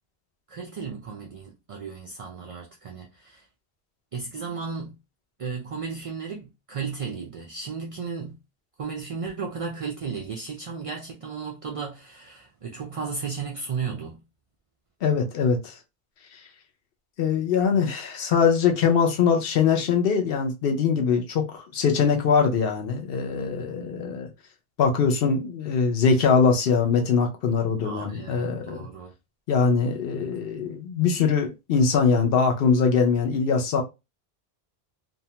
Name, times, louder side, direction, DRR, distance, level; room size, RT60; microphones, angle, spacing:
voice 1, 0.5-3.5 4.1-5.0 5.4-8.4 8.8-14.2 27.8-29.1, right 5 dB, 55° right, 0.4 m, -34 dB
voice 2, 15.0-15.8 17.2-24.3 24.8-28.9 29.5-33.8, left 5 dB, 70° left, 0.7 m, -22 dB
2.7 x 2.2 x 2.8 m
omnidirectional pair, 1.1 m